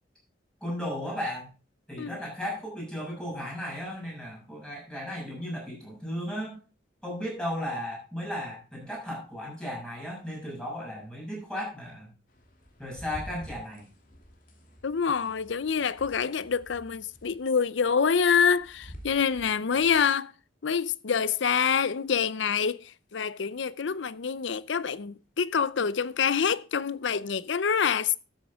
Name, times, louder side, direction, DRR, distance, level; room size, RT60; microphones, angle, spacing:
voice 1, 0.6-1.5 1.9-6.6 7.0-12.1 12.8-13.9, equal, 5° left, 6.8 m, -35 dB
sound 1, 12.3-20.0, equal, 45° left, 2.6 m, -49 dB
voice 2, 14.8-20.3 20.6-28.1, left 6 dB, 70° left, 0.6 m, -26 dB
13.0 x 8.7 x 3.5 m
head